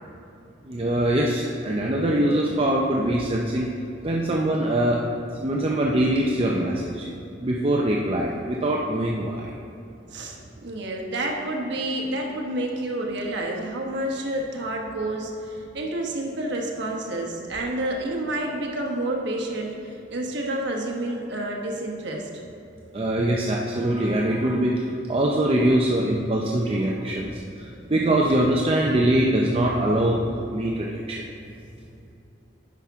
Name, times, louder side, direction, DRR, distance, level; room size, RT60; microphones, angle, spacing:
voice 1, 0.7-3.7 4.0-5.0 5.4-7.1 7.4-9.5 22.9-24.8 25.1-27.3 27.6-31.2, right 1 dB, 30° right, -2 dB, 0.5 m, -23 dB
voice 2, 10.1-22.3 27.7-27.9, right 1 dB, 65° right, 0 dB, 1.2 m, -29 dB
9.9 x 5.9 x 3.6 m, 2.8 s
head